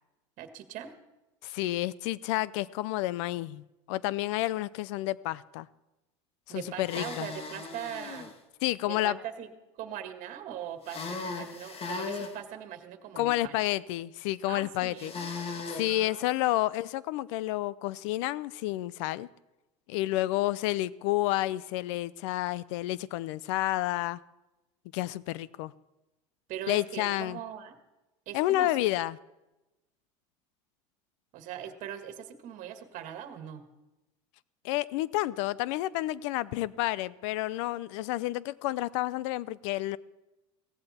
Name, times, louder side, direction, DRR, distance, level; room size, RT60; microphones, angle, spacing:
voice 1, 0.4-0.9 6.5-8.3 8.8-9.5 9.8-13.6 14.5-15.2 15.9-16.5 26.5-27.8 28.3-28.7 31.3-33.6, right 10 dB, 55° right, 1.8 m, -41 dB
voice 2, 1.4-5.7 6.5-7.3 8.6-9.2 13.2-15.1 15.7-19.3 19.9-24.2 24.9-25.7 26.7-27.4 28.3-29.2 34.6-40.0, left 16 dB, 75° left, 0.6 m, -30 dB
sound 1, 6.8-8.3 10.8-12.3 15.0-15.9, left 4 dB, 35° left, 1.9 m, -37 dB
17.0 x 15.0 x 4.3 m
supercardioid pair, 100°, 16 cm